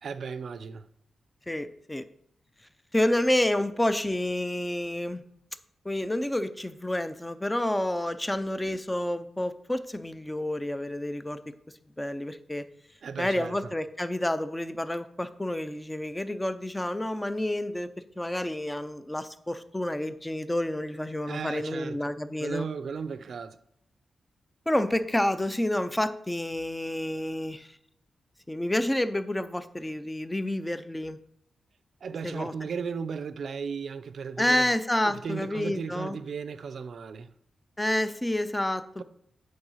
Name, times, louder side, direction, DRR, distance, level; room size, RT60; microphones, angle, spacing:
voice 1, 0.0-0.9 13.0-13.7 21.3-22.1 22.4-23.6 32.0-34.7 35.0-37.3, right 6 dB, 70° right, 0.5 m, -36 dB
voice 2, 1.5-2.0 2.9-5.2 5.8-11.4 12.0-12.6 13.2-17.9 18.2-22.7 24.7-27.8 28.5-31.2 32.2-32.5 34.4-36.2 37.8-38.8, left 1 dB, 10° left, 0.5 m, -29 dB
8.6 x 3.8 x 5.6 m
cardioid pair, 95°, 0 cm